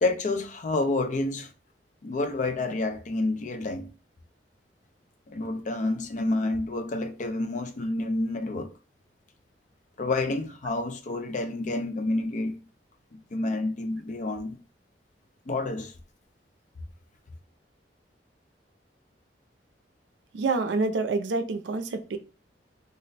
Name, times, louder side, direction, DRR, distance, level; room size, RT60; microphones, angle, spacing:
voice 1, 0.0-1.5 2.0-3.9 5.3-8.7 10.0-12.6 13.1-14.6 15.5-15.9, left 2 dB, 45° left, 0.4 m, -29 dB
voice 2, 20.3-22.2, right 3 dB, 85° right, 0.4 m, -27 dB
2.5 x 2.1 x 3.9 m
head